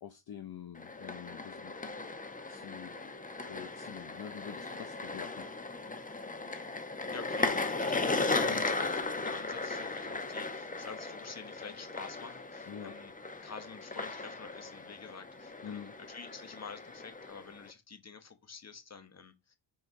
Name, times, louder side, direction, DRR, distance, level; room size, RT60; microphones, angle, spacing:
voice 1, 0.0-1.8 2.5-2.9 3.5-5.5 8.4-8.7 12.7-12.9 15.6-15.9, left 9 dB, 50° left, 0.9 m, -46 dB
sound 1, 0.8-17.7, left 3 dB, 15° left, 0.9 m, -37 dB
voice 2, 7.1-13.1 13.4-19.6, left 5 dB, 30° left, 1.3 m, -48 dB
5.7 x 4.0 x 4.7 m
cardioid pair, 95°, 49 cm